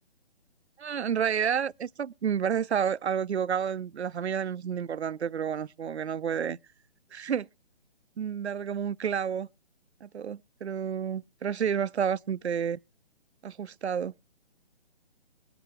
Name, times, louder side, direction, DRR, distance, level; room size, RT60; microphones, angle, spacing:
voice 1, 0.8-6.6 7.1-7.5 8.2-9.5 10.0-12.8 13.4-14.1, right 8 dB, 80° right, 0.6 m, -30 dB
21.5 x 8.1 x 3.2 m
figure-of-eight pair, 145°, 33 cm